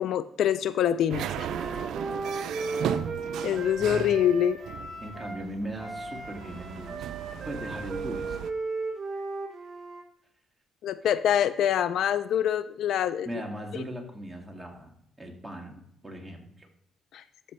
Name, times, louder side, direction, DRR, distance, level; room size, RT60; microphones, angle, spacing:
voice 1, 0.0-1.5 3.4-4.6 10.8-13.3 17.1-17.2, left 10 dB, 75° left, 14 dB, 0.4 m, -25 dB
sound 1, 1.1-8.5, right 9 dB, 80° right, 0.4 m, -36 dB
Wind instrument woodwind instrument, 1.4-5.4 5.8-10.0, right 3 dB, 25° right, 3.5 m, -36 dB
voice 2, 5.0-7.1 7.4-8.5 13.3-16.7, right 1 dB, 10° right, 1 dB, 2.0 m, -39 dB
13.5 x 5.2 x 3.2 m, 0.71 s
cardioid pair, 90°, 0 cm